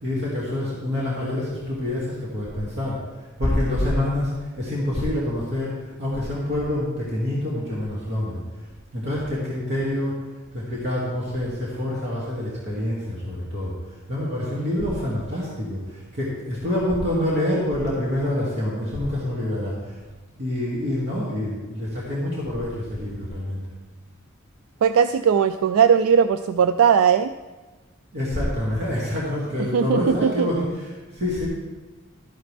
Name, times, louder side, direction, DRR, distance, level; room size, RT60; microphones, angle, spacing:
voice 1, 0.0-8.4 8.9-10.2 10.5-20.0 20.4-23.6 28.1-31.5, left 1 dB, 55° right, -6 dB, 2.4 m, -26 dB
voice 2, 24.8-27.3 29.7-30.5, right 7 dB, 80° right, 11 dB, 0.3 m, -18 dB
13.0 x 9.0 x 3.4 m, 1.2 s
head